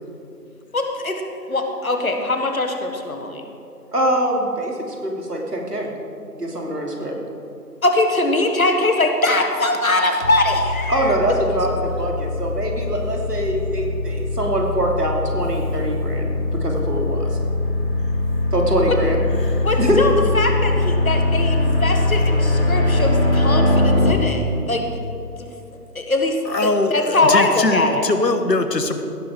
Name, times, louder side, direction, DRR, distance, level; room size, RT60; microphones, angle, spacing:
voice 1, 0.7-3.4 7.8-11.1 19.6-24.9 25.4-25.5 26.0-28.1, left 2 dB, 55° left, 4 dB, 1.8 m, -21 dB
voice 2, 3.9-5.9 6.3-7.1 10.9-17.3 18.5-19.2 19.8-20.0, right 1 dB, 70° right, 0 dB, 3.1 m, -23 dB
sound 1, 10.2-24.1, left 2 dB, 40° left, 1.0 m, -21 dB
voice 3, 26.4-29.0, left 2 dB, 90° left, 8 dB, 1.4 m, -21 dB
16.5 x 10.5 x 4.9 m, 2.6 s
figure-of-eight pair, 175°, 49 cm